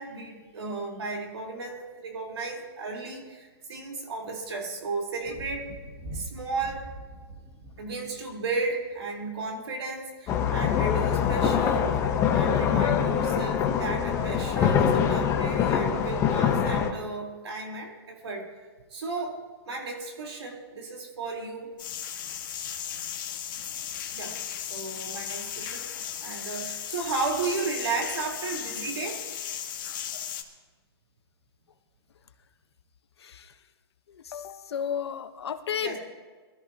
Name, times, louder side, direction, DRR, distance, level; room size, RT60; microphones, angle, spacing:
voice 1, 0.0-5.7 6.1-6.9 7.8-12.0 12.3-18.5 18.9-19.4 19.7-21.7 24.1-25.8 26.2-29.2 35.8-36.0, right 3 dB, 80° right, 1 dB, 4.0 m, -34 dB
Thunder, 5.2-9.1 10.4-10.5, right 2 dB, 20° right, 2.2 m, -43 dB
sound 1, 10.3-16.9, left 8 dB, 20° left, 1.1 m, -24 dB
sound 2, 21.8-30.4, left 9 dB, 50° left, 1.7 m, -36 dB
voice 2, 33.2-33.5 34.1-36.0, left 8 dB, 75° left, 8 dB, 1.2 m, -33 dB
23.0 x 13.5 x 2.9 m, 1.4 s
hypercardioid pair, 150°, 14 cm